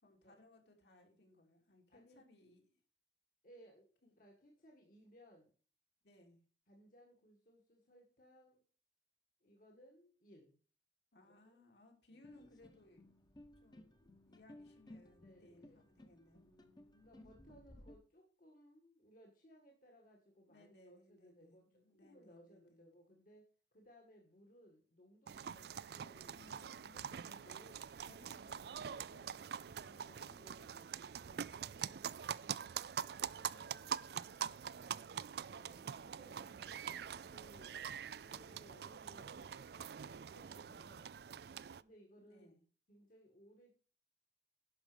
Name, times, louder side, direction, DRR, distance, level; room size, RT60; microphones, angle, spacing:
voice 1, 0.0-2.8 6.0-6.4 11.1-13.1 13.6-17.8 20.5-22.9 25.4-25.8 26.3-30.4 33.0-34.5 34.8-35.2 36.0-36.2 36.4-37.7 38.2-38.6 42.2-42.6, left 1 dB, 65° left, 2 dB, 3.1 m, -66 dB
voice 2, 1.9-2.2 3.4-5.5 6.7-8.6 9.4-10.6 11.2-11.6 12.1-12.2 15.2-15.8 17.0-21.6 22.0-27.9 29.8-32.0 35.4-36.5 37.3-37.9 38.2-41.2 41.8-42.5 42.9-43.7, equal, 45° left, 1 dB, 1.9 m, -64 dB
sound 1, 12.2-17.9, left 1 dB, 25° left, 1.2 m, -59 dB
sound 2, 25.3-41.8, right 8 dB, 60° right, 0.4 m, -45 dB
11.0 x 6.4 x 5.2 m, 0.39 s
head